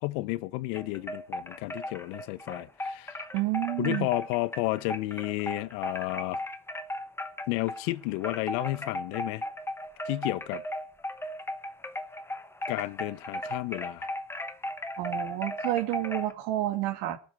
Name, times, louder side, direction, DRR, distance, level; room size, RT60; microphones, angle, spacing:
voice 1, 0.0-3.2 3.8-6.4 7.5-9.4 10.1-10.6 12.7-14.1, left 20 dB, 90° left, 1.1 m, -32 dB
sound 1, 0.7-7.9 8.2-16.3, left 1 dB, 5° left, 0.9 m, -36 dB
voice 2, 3.3-4.1 15.0-17.2, right 15 dB, 90° right, 2.4 m, -29 dB
22.5 x 7.5 x 6.0 m
cardioid pair, 165°, 49 cm